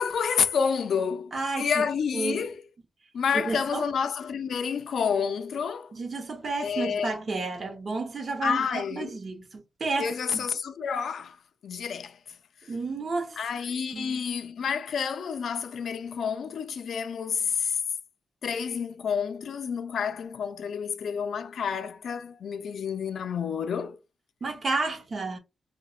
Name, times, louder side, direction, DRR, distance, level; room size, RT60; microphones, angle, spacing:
voice 1, 0.0-2.6 3.1-5.9 6.6-7.1 8.4-9.1 10.0-11.4 11.6-12.2 13.4-17.8 18.4-24.0, left 6 dB, 75° left, 0.4 m, -29 dB
voice 2, 1.3-1.9 2.1-2.5 3.4-3.9 5.9-10.5 12.7-13.4 13.9-14.2 24.4-25.4, right 3 dB, 40° right, 0.7 m, -31 dB
4.0 x 2.1 x 2.3 m
wide cardioid pair, 160°, 0 cm